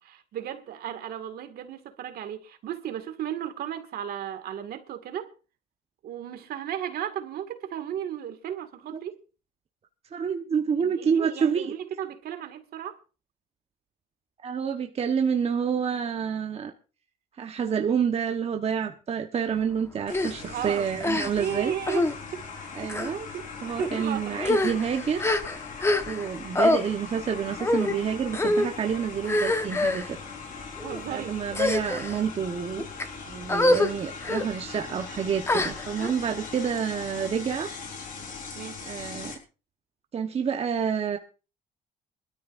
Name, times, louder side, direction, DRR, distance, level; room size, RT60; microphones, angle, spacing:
voice 1, 0.0-5.3 6.0-9.2 10.8-13.0 20.4-20.9 21.3-22.5 23.3-23.5 23.8-24.5 30.8-31.4 38.6-38.8, right 10 dB, 65° right, 2.0 m, -35 dB
voice 2, 10.1-11.7 14.4-16.7 17.4-21.7 22.7-23.3 23.6-25.3 26.1-30.2 31.1-32.9 33.3-37.7 38.8-39.3 40.1-41.2, right 7 dB, 35° right, 1.1 m, -28 dB
sound 1, 20.1-39.3, left 5 dB, 55° left, 4.5 m, -40 dB
sound 2, 20.1-20.3 21.0-21.5 21.9-22.1 22.8-23.1 23.8-24.0 24.4-26.3 26.5-26.8 27.6-28.0 28.3-28.7 29.2-30.1 30.8-31.0 31.5-32.2 32.8-33.0 33.5-33.9 34.2-34.4 35.5-36.1, left 2 dB, 15° left, 1.2 m, -25 dB
22.5 x 13.0 x 2.6 m
cardioid pair, 110°, 17 cm